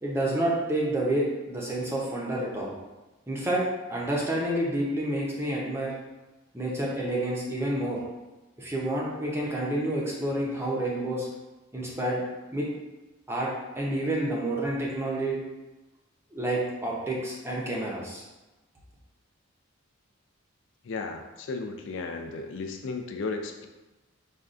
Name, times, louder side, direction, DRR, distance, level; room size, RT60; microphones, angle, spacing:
voice 1, 0.0-2.7 3.3-3.6 3.9-5.9 6.5-8.0 8.6-11.3 11.7-12.2 12.5-12.7 13.3-13.5 13.8-15.4 16.3-18.3, right 1 dB, 10° right, -4 dB, 0.6 m, -29 dB
voice 2, 20.8-23.7, left 3 dB, 55° left, 4 dB, 0.4 m, -34 dB
5.3 x 2.3 x 2.4 m, 1.1 s
head